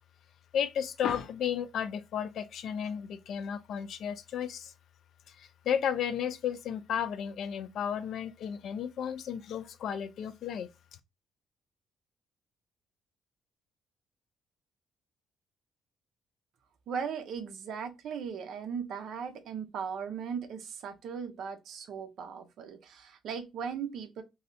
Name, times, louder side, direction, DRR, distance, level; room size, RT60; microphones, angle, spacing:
voice 1, 0.5-4.7 5.4-10.7, left 8 dB, 60° left, 0.4 m, -33 dB
voice 2, 16.9-24.2, right 6 dB, 60° right, 0.6 m, -38 dB
3.1 x 2.7 x 2.6 m
cardioid pair, 150°, 0 cm